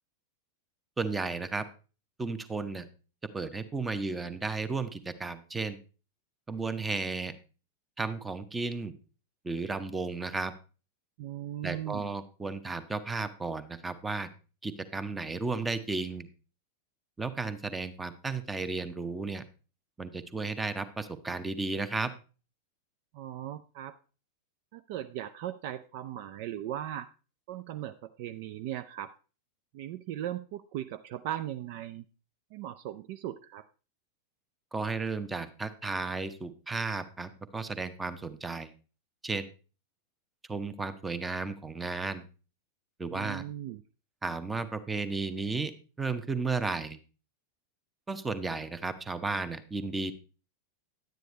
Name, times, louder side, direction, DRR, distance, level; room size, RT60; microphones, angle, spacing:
voice 1, 1.0-1.6 2.2-2.9 3.3-5.8 6.5-7.3 8.0-8.9 9.4-10.5 11.6-14.3 14.6-16.3 17.2-19.4 20.0-22.1 34.7-38.7 39.2-39.5 40.5-42.3 43.0-43.4 44.2-45.7 46.0-47.0 48.1-50.1, right 3 dB, 10° right, 13 dB, 0.8 m, -34 dB
voice 2, 11.2-12.1 23.1-24.0 24.7-27.1 27.5-29.1 29.7-32.0 32.5-33.7 43.1-43.8, right 12 dB, 45° right, 12 dB, 0.4 m, -38 dB
10.5 x 9.2 x 3.1 m, 0.35 s
figure-of-eight pair, 90°, 0 cm